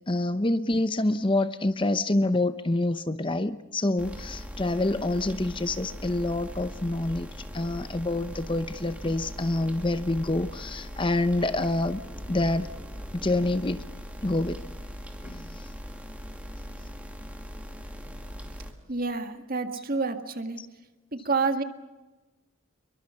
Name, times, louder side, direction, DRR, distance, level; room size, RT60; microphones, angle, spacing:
voice 1, 0.1-12.0 12.3-12.7 13.1-13.8 14.2-14.6 15.2-15.7 20.6-20.7, left 2 dB, 25° left, 12 dB, 0.8 m, -27 dB
sound 1, 4.0-18.7, equal, 5° right, 2.7 m, -40 dB
voice 2, 18.9-20.6 21.1-21.6, right 4 dB, 45° right, 7 dB, 1.9 m, -28 dB
28.5 x 23.5 x 5.7 m, 1.1 s
head